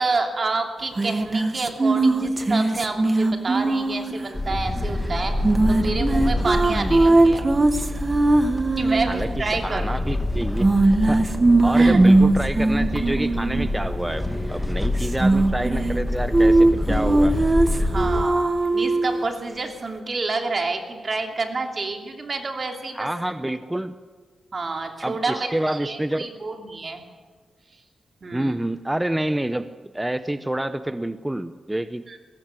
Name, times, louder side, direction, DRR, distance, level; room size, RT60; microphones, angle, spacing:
voice 1, 0.0-7.5 8.8-9.9 11.7-12.0 17.8-23.1 24.5-27.0 28.2-28.6 32.1-32.2, right 3 dB, 40° right, 4 dB, 2.8 m, -28 dB
sound 1, 1.0-4.3 5.4-9.2 10.6-13.7 15.0-16.0 16.3-19.2, right 2 dB, 25° right, 1.4 m, -19 dB
sound 2, 4.3-18.2, left 1 dB, 15° left, 2.0 m, -27 dB
voice 2, 6.7-7.0 9.1-10.7 11.1-11.2 11.6-17.4 22.9-24.0 25.0-26.3 28.3-29.7 29.9-32.2, right 1 dB, 10° right, 11 dB, 0.7 m, -28 dB
22.5 x 18.0 x 7.8 m, 1.5 s
wide cardioid pair, 110°, 0 cm